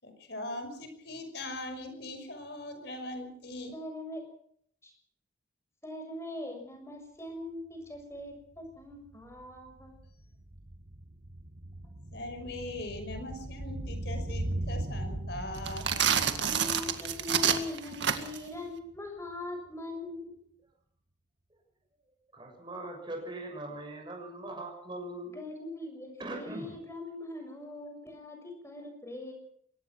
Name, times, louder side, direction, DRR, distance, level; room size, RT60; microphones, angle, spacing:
voice 1, 0.0-3.8 12.1-16.1, left 1 dB, 60° left, 8 dB, 5.8 m, -40 dB
voice 2, 3.7-4.2 4.8-4.9 5.8-9.9 16.2-20.4 25.3-29.3, left 2 dB, 15° left, 4 dB, 7.0 m, -41 dB
sound 1, 7.9-8.0 8.3-18.7 18.9-19.0, right 1 dB, 45° right, 1.4 m, -39 dB
sound 2, 15.6-18.5, right 8 dB, 70° right, 2.0 m, -28 dB
voice 3, 22.4-25.4 26.2-26.8, right 1 dB, 25° right, 1 dB, 6.8 m, -40 dB
23.0 x 18.5 x 6.2 m, 0.64 s
head